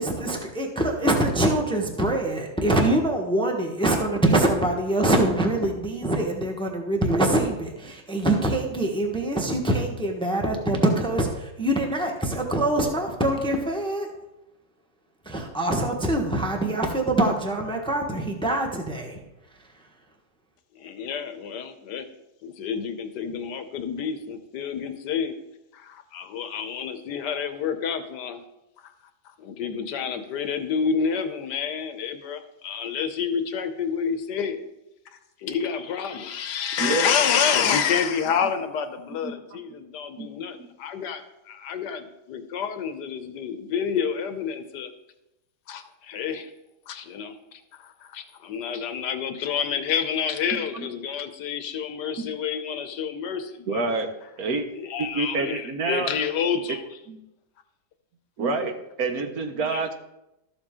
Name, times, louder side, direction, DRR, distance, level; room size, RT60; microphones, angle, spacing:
voice 1, 0.0-14.1 15.2-19.2, right 1 dB, 5° left, 2 dB, 0.8 m, -24 dB
voice 2, 20.8-22.1 22.4-25.3 25.7-28.4 28.8-28.9 29.4-34.6 35.4-44.9 45.7-46.5 46.9-53.8 54.7-56.8 59.7-59.8, left 7 dB, 70° left, 9 dB, 1.3 m, -28 dB
voice 3, 53.7-54.1 54.4-54.7 55.0-56.1 57.1-57.2 58.4-59.9, right 3 dB, 60° right, 7 dB, 1.2 m, -27 dB
13.0 x 7.1 x 3.7 m, 0.90 s
omnidirectional pair, 2.0 m